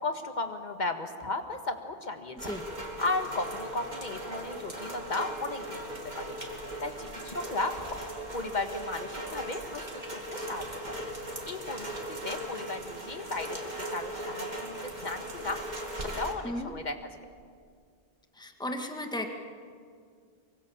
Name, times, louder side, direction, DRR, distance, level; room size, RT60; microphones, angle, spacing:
voice 1, 0.0-2.4 3.0-6.4 6.8-7.7 8.3-11.1 11.5-15.6 16.0-17.0, left 3 dB, 45° left, 7 dB, 1.8 m, -35 dB
Rain, 2.4-16.3, right 1 dB, 45° right, 2.8 m, -38 dB
voice 2, 18.4-19.3, left 1 dB, 5° left, 4 dB, 1.7 m, -35 dB
24.0 x 24.0 x 7.3 m, 2.1 s
omnidirectional pair, 1.0 m